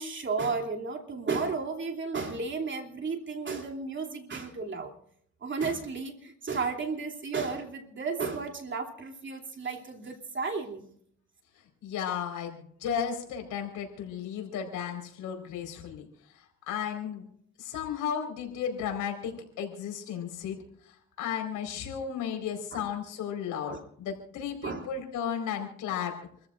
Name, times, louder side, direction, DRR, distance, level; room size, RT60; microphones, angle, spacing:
voice 1, 0.0-4.9 5.4-10.8 22.7-22.9 23.7-23.8 24.6-24.9, right 4 dB, 40° right, 3 dB, 3.0 m, -33 dB
voice 2, 11.8-16.1 16.3-17.2 17.6-26.2, left 8 dB, 85° left, 4 dB, 4.5 m, -34 dB
28.5 x 14.5 x 2.5 m, 0.68 s
cardioid pair, 90°, 30 cm